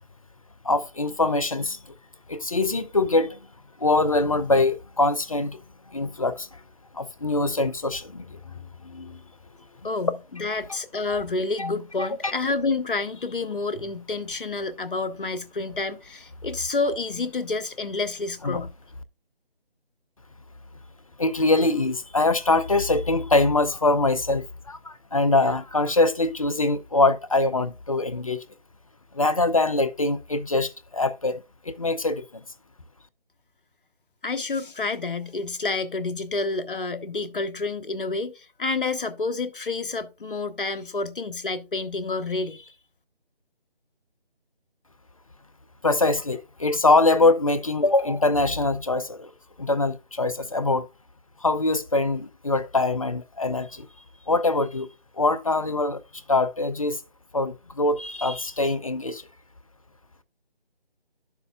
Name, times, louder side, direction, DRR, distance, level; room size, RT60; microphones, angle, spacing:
voice 1, 0.6-1.8 2.3-3.4 3.8-5.6 5.9-6.5 7.0-8.4 8.8-9.2 11.6-11.7 12.0-12.3 18.4-18.6 21.2-28.4 29.1-32.2 45.8-49.3 49.6-50.9 51.4-53.9 54.3-54.9 55.2-56.0 56.3-57.0 57.3-59.2, left 2 dB, 35° left, 0.5 m, -23 dB
voice 2, 9.8-18.7 34.2-42.7, left 3 dB, 60° left, 1.0 m, -29 dB
11.0 x 6.9 x 2.4 m
figure-of-eight pair, 160°, 30 cm